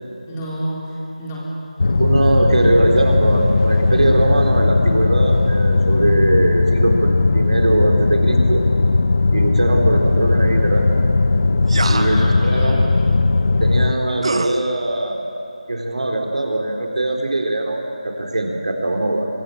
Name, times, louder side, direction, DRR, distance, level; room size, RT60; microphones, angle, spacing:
voice 1, 0.3-1.5 11.8-13.2, equal, 15° left, -5 dB, 4.1 m, -29 dB
sound 1, 1.8-13.9, left 3 dB, 45° left, 1.0 m, -17 dB
voice 2, 2.0-8.6 9.3-10.9 11.9-12.2 12.4-12.8 13.6-15.2 15.7-19.3, right 2 dB, 65° right, 2 dB, 3.9 m, -20 dB
sound 2, 11.7-12.3 14.2-14.6, right 3 dB, 45° right, 1.2 m, -24 dB
25.0 x 22.5 x 7.1 m, 2.9 s
figure-of-eight pair, 170°, 4 cm